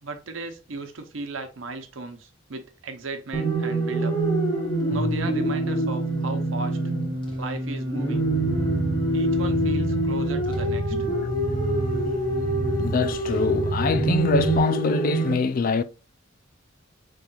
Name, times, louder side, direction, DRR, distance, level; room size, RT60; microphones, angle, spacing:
voice 1, 0.0-4.2 4.9-6.8 7.4-8.3 9.1-11.0, right 3 dB, 90° right, 0.9 m, -36 dB
sound 1, 3.3-15.3, right 1 dB, 25° left, 1.2 m, -25 dB
sound 2, 8.2-14.6, right 2 dB, 40° right, 0.4 m, -30 dB
voice 2, 12.8-15.8, left 4 dB, 45° left, 0.3 m, -24 dB
5.5 x 3.2 x 2.4 m
head